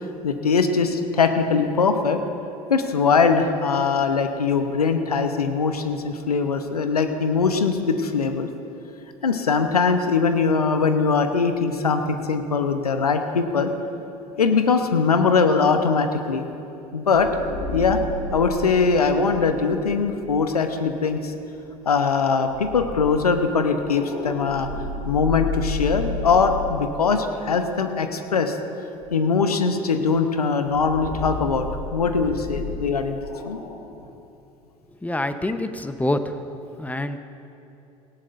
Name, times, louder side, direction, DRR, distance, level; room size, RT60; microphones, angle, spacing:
voice 1, 0.2-2.2 2.7-8.5 9.2-13.7 14.4-16.4 16.9-17.3 17.7-18.0 18.3-21.3 21.9-24.7 25.1-28.6 29.1-31.7 31.9-33.6, left 5 dB, 90° left, 7 dB, 0.9 m, -21 dB
sound 1, 17.1-21.4 22.5-28.5 29.0-29.1 30.7-34.1, left 3 dB, 65° left, 2.3 m, -33 dB
voice 2, 35.0-36.4 36.8-37.2, left 1 dB, 10° left, 10 dB, 0.8 m, -26 dB
18.0 x 17.5 x 2.6 m, 2.8 s
hypercardioid pair, 70°, 19 cm